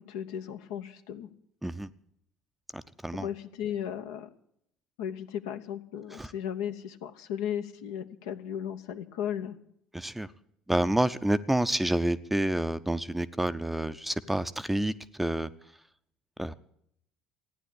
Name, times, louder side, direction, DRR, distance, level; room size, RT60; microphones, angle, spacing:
voice 1, 0.1-1.3 3.1-4.3 5.0-9.6, left 9 dB, 65° left, 7 dB, 0.9 m, -35 dB
voice 2, 2.7-3.3 6.2-6.3 9.9-10.3 10.7-14.9 15.2-15.5 16.4-16.6, right 1 dB, 5° right, 13 dB, 0.6 m, -28 dB
15.5 x 10.0 x 8.3 m, 0.72 s
figure-of-eight pair, 60°, 3 cm